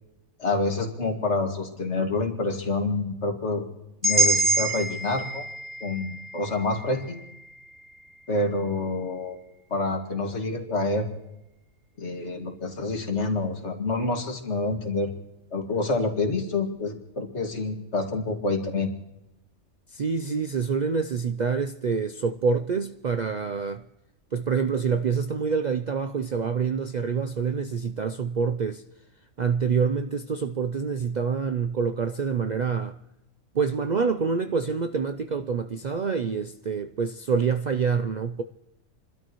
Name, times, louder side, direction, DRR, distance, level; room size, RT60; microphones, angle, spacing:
voice 1, 0.4-3.6 4.0-5.4 5.8-7.2 8.3-9.4 9.7-11.1 12.0-15.2 15.5-18.9, left 2 dB, 50° left, 2.3 m, -27 dB
sound 1, 4.0-8.1, right 2 dB, 30° right, 3.1 m, -27 dB
voice 2, 19.9-23.8 24.3-28.8 29.4-33.0 33.5-38.4, right 5 dB, 90° right, 0.4 m, -26 dB
29.5 x 12.5 x 3.0 m
omnidirectional pair, 1.5 m